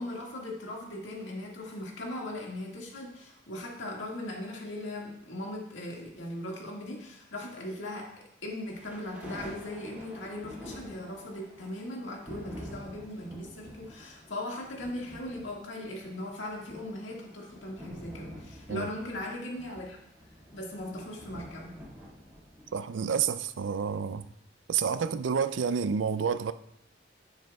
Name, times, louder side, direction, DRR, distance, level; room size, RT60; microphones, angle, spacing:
voice 1, 0.0-20.0 20.5-21.8, left 1 dB, 90° left, 1.9 m, -39 dB
sound 1, 8.7-23.0, equal, 10° right, 2.0 m, -48 dB
voice 2, 22.7-24.2 24.7-26.5, right 6 dB, 85° right, 0.4 m, -29 dB
10.5 x 9.1 x 2.3 m
head